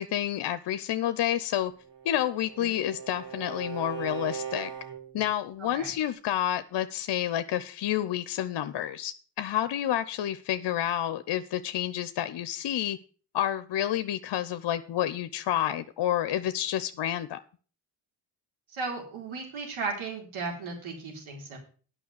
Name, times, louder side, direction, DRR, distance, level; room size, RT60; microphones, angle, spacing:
voice 1, 0.0-1.7 2.0-4.7 5.1-13.0 13.3-17.4, left 11 dB, 55° left, 13 dB, 0.7 m, -29 dB
Bowed string instrument, 1.7-5.3, right 7 dB, 55° right, 4.0 m, -39 dB
voice 2, 5.6-5.9 18.7-21.6, right 4 dB, 75° right, 0 dB, 4.0 m, -35 dB
9.3 x 5.7 x 7.8 m, 0.40 s
supercardioid pair, 50°, 48 cm